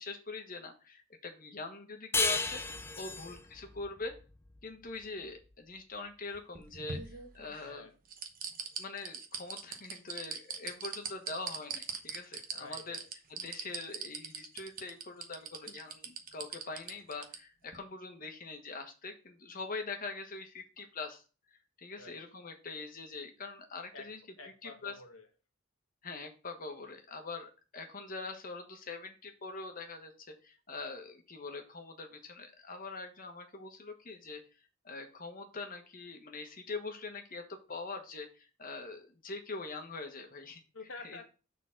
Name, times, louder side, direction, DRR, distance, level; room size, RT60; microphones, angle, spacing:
voice 1, 0.0-2.6 2.9-4.1 4.6-7.9 8.7-13.0 13.3-21.2 21.5-24.2 24.6-24.9 26.0-34.4 34.8-40.6 41.0-41.2, left 3 dB, 45° left, 1.3 m, -43 dB
sound 1, 2.1-5.3, left 4 dB, 10° left, 0.3 m, -34 dB
sound 2, 6.3-7.7 8.1-17.4 17.7-17.8, right 6 dB, 45° right, 1.0 m, -40 dB
voice 2, 7.6-7.9 12.5-13.1 22.0-22.2 23.9-25.3 40.7-41.3, left 3 dB, 80° left, 1.4 m, -49 dB
6.7 x 4.0 x 5.8 m
head